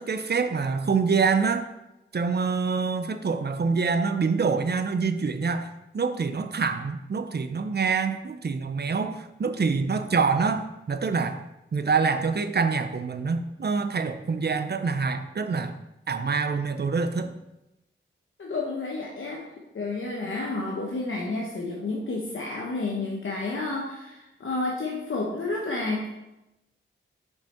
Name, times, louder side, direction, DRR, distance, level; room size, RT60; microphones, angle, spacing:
voice 1, 0.0-1.7 2.1-11.4 11.7-15.7 16.1-17.3, right 5 dB, 50° right, 9 dB, 0.5 m, -26 dB
voice 2, 18.4-19.4 19.7-26.1, left 3 dB, 70° left, -2 dB, 1.0 m, -30 dB
5.7 x 5.4 x 4.3 m, 0.94 s
wide cardioid pair, 65°, 21 cm